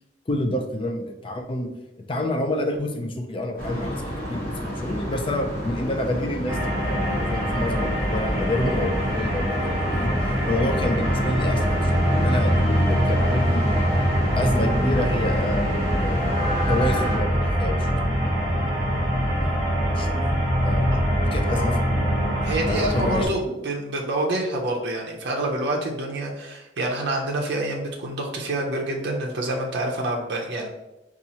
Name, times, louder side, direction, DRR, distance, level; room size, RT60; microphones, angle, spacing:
voice 1, 0.3-1.7 2.0-4.0 4.3-10.1 10.5-13.6 14.4-16.2 16.7-17.9 18.2-18.4 18.7-18.8 19.1-19.6 19.9-20.2 20.6-20.9 21.2-22.1 22.7-23.3, left 1 dB, 30° left, 3 dB, 0.4 m, -28 dB
sound 1, 3.6-17.2, equal, 50° left, 1.1 m, -31 dB
sound 2, 6.5-23.3, equal, 20° right, 0.9 m, -23 dB
voice 2, 22.4-30.7, right 1 dB, 65° right, 0 dB, 0.5 m, -27 dB
4.1 x 2.4 x 2.8 m, 0.95 s
head